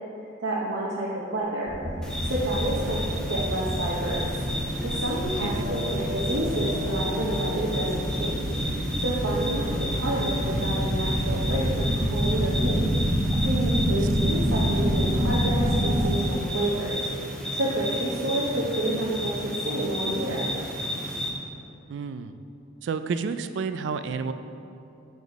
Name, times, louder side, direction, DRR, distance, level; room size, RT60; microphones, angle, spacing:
voice 1, 0.4-1.7 2.2-3.0 3.3-4.3 4.8-12.8 13.4-17.1 17.5-20.5, right 1 dB, 85° right, -6 dB, 0.8 m, -29 dB
sound 1, 1.4-8.3, left 2 dB, 80° left, 0.7 m, -42 dB
sound 2, 1.7-16.1, equal, 35° right, 0.8 m, -27 dB
sound 3, 2.0-21.3, equal, 5° left, 0.6 m, -33 dB
voice 2, 5.2-5.7 13.9-14.4 21.9-22.4 22.8-24.3, right 5 dB, 65° right, 10 dB, 0.3 m, -31 dB
7.2 x 3.9 x 4.7 m, 2.6 s
head